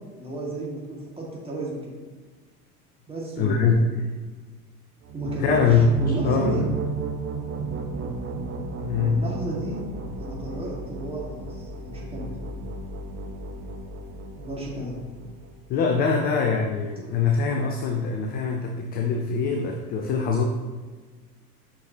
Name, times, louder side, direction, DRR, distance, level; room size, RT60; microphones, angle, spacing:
voice 1, 0.1-2.0 3.1-4.0 5.1-6.7 8.9-9.8 10.2-12.3 14.4-15.0 17.4-17.5, right 1 dB, 10° right, -4 dB, 1.8 m, -33 dB
voice 2, 3.4-3.8 5.4-5.9 6.2-6.7 8.9-9.2 15.7-20.4, left 5 dB, 20° left, 3 dB, 0.3 m, -23 dB
sound 1, 5.0-15.7, right 3 dB, 25° right, 0.7 m, -34 dB
7.5 x 5.7 x 2.7 m, 1.4 s
figure-of-eight pair, 70°, 46 cm